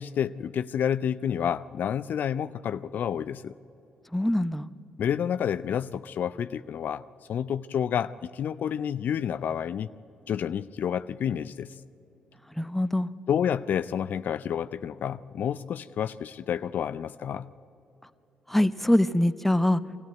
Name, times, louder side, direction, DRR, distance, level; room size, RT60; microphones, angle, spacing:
voice 1, 0.0-3.5 5.0-7.0 7.3-9.9 10.3-11.7 13.3-17.5, left 8 dB, 60° left, 14 dB, 0.4 m, -29 dB
voice 2, 4.1-4.7 12.6-13.1 18.5-19.8, left 1 dB, 5° left, 13 dB, 0.8 m, -23 dB
23.0 x 14.5 x 9.2 m, 2.9 s
hypercardioid pair, 50°, 3 cm